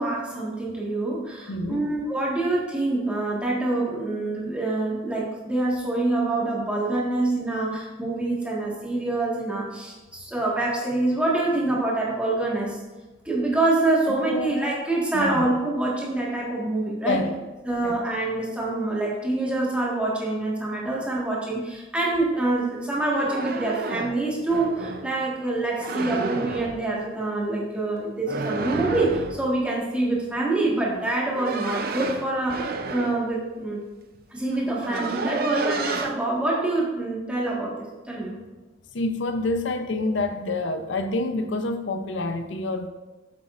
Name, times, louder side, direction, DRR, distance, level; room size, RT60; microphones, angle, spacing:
voice 1, 0.0-12.8 13.2-17.2 17.6-33.8 34.3-37.7 38.1-38.4, right 2 dB, 5° right, -5 dB, 1.6 m, -26 dB
voice 2, 1.5-1.9 14.1-14.5 15.1-15.5 17.0-17.4 17.8-18.0 38.9-42.9, left 2 dB, 90° left, 8 dB, 0.6 m, -27 dB
sound 1, 23.0-25.1 25.8-26.8 28.3-29.5 31.0-33.3 34.1-34.2 34.5-36.1, right 3 dB, 55° right, 0.6 m, -30 dB
8.4 x 7.1 x 2.5 m, 1.2 s
head